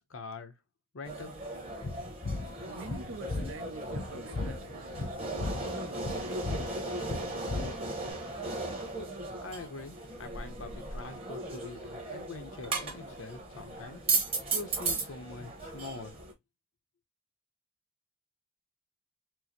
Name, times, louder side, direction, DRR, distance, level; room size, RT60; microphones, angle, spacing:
voice 1, 0.1-0.5 0.9-1.3 9.4-16.2, left 3 dB, 85° left, 0.8 m, -44 dB
sound 1, 1.0-16.3, right 3 dB, 30° right, 1.1 m, -36 dB
sound 2, 1.8-8.1, left 3 dB, 45° left, 0.5 m, -37 dB
voice 2, 2.5-8.7, right 2 dB, 80° right, 0.6 m, -47 dB
4.6 x 2.1 x 2.8 m
head